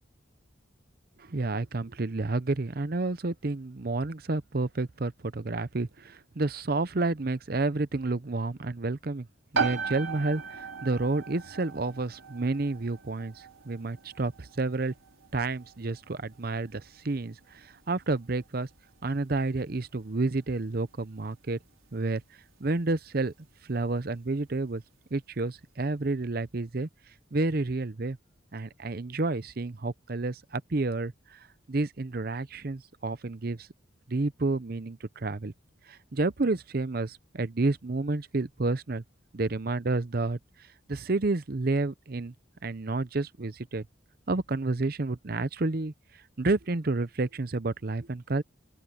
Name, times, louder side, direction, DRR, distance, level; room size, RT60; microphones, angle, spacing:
voice 1, 1.2-9.3 9.5-14.9 15.3-18.7 19.0-21.6 21.9-22.2 22.6-23.3 23.6-24.8 25.1-26.9 27.3-28.2 28.5-31.4 31.7-33.7 34.1-35.5 35.9-39.0 39.3-40.4 40.9-42.3 42.6-43.8 44.3-45.9 46.4-48.4, right 3 dB, 45° right, 0.7 m, -30 dB
sound 1, 9.5-24.0, right 5 dB, 85° right, 4.6 m, -39 dB
open air
head